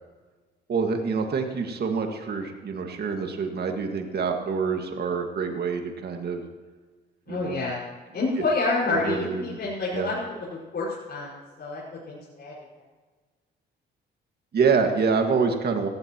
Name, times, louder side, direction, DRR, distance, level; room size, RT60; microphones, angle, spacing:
voice 1, 0.7-6.4 7.3-7.6 8.9-9.6 9.9-10.1 14.5-15.9, right 5 dB, 55° right, 4 dB, 1.9 m, -26 dB
voice 2, 7.3-7.8 8.1-12.5, left 3 dB, 55° left, -7 dB, 5.4 m, -28 dB
17.5 x 15.5 x 3.0 m, 1.4 s
cardioid pair, 90°, 20 cm